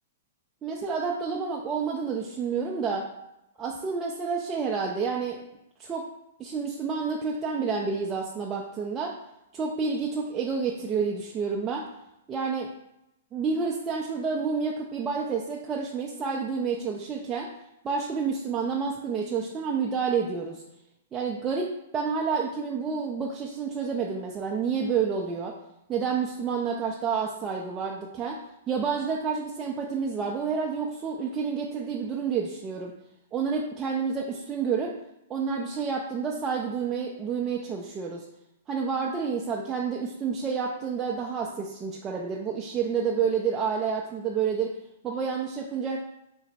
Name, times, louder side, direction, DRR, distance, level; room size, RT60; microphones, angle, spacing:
voice 1, 0.6-3.0 3.6-5.4 5.8-6.0 6.4-9.1 9.5-11.8 12.3-12.7 13.3-17.5 17.8-20.6 21.1-25.5 25.9-28.4 28.7-32.9 33.3-34.9 35.3-38.3 38.7-44.7 45.0-46.0, right 5 dB, 20° right, -2 dB, 0.4 m, -29 dB
3.8 x 2.1 x 4.1 m, 0.86 s
hypercardioid pair, 130°, 0 cm